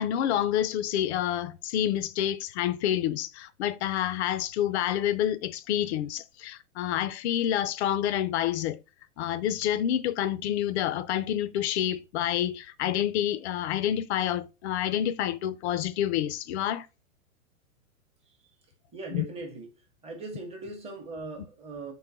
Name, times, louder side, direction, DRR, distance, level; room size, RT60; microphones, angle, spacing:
voice 1, 0.0-8.8 9.2-16.9 19.1-19.3, left 11 dB, 50° left, 0.5 m, -28 dB
voice 2, 18.9-19.7 20.0-21.9, right 3 dB, 15° right, 0.8 m, -39 dB
3.8 x 2.1 x 4.0 m
hypercardioid pair, 125°, 43 cm